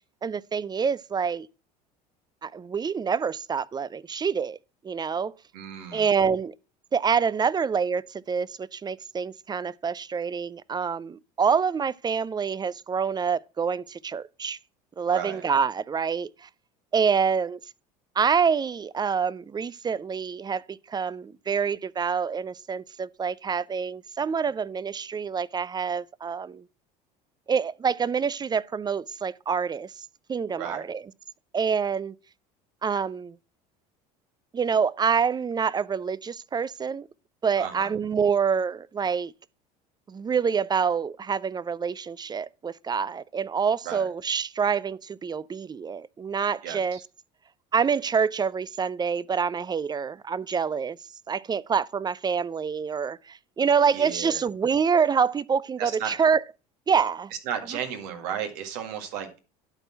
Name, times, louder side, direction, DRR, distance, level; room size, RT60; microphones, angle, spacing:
voice 1, 0.2-1.5 2.4-4.6 4.8-5.3 5.9-6.5 6.9-14.6 15.0-16.5 16.9-17.6 18.2-26.6 27.5-29.9 30.3-31.0 31.5-32.1 32.8-33.3 34.5-37.1 37.4-39.3 40.1-47.0 47.7-51.0 51.3-56.4 56.9-57.3, right 6 dB, 20° right, 0.4 m, -26 dB
voice 2, 5.5-6.1 15.1-15.4 30.6-30.8 37.6-37.9 43.8-44.1 46.6-47.0 53.9-54.4 55.8-56.2 57.5-59.4, right 8 dB, 75° right, 1.9 m, -34 dB
11.5 x 4.4 x 5.7 m
hypercardioid pair, 75°, 21 cm